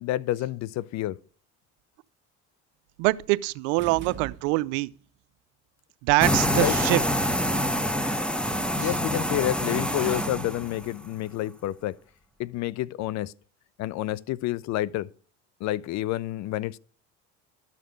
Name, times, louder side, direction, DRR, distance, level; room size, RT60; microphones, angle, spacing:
voice 1, 0.0-1.2 6.5-6.7 8.7-12.0 12.4-13.3 13.8-15.1 15.6-16.8, left 14 dB, 50° left, 0.5 m, -29 dB
voice 2, 3.0-4.9 6.0-7.0 8.8-8.9, right 22 dB, 75° right, 0.6 m, -24 dB
sound 1, 3.8-5.0, right 8 dB, 30° right, 1.3 m, -41 dB
sound 2, 6.2-11.0, equal, 5° left, 0.8 m, -26 dB
12.5 x 6.7 x 5.1 m
supercardioid pair, 90°, 36 cm